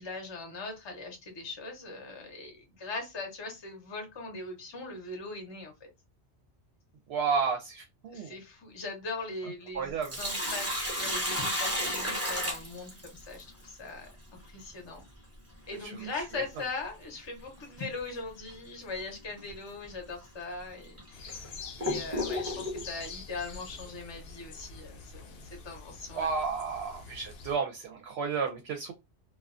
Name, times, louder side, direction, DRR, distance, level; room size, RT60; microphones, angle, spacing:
voice 1, 0.0-5.9 8.1-15.0 15.7-25.3 25.6-26.3, left 3 dB, 30° left, 2 dB, 0.6 m, -40 dB
voice 2, 7.1-8.3 9.7-10.2 15.8-16.4 26.1-28.9, right 5 dB, 70° right, 3 dB, 0.8 m, -32 dB
Sink (filling or washing), 9.8-13.4 15.8-15.9 17.8-18.0 18.5-18.6 19.4-19.5 20.2-20.3 21.0-22.9, equal, 15° right, 0.7 m, -32 dB
sound 1, 21.1-27.6, left 5 dB, 65° left, 0.7 m, -45 dB
2.3 x 2.2 x 2.4 m, 0.23 s
omnidirectional pair, 1.1 m